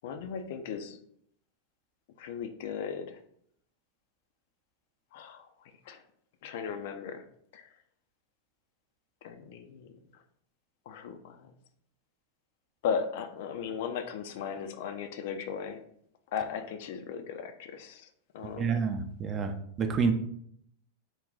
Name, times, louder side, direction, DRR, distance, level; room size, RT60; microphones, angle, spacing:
voice 1, 0.0-1.0 2.2-3.2 5.1-6.0 6.4-7.2 7.5-7.7 9.2-10.2 10.9-11.5 12.8-15.8 16.3-18.1 18.3-18.8, left 7 dB, 50° left, 7 dB, 0.3 m, -37 dB
voice 2, 18.6-20.1, right 5 dB, 25° right, 6 dB, 0.4 m, -29 dB
3.8 x 2.2 x 3.7 m, 0.68 s
figure-of-eight pair, 90°, 0 cm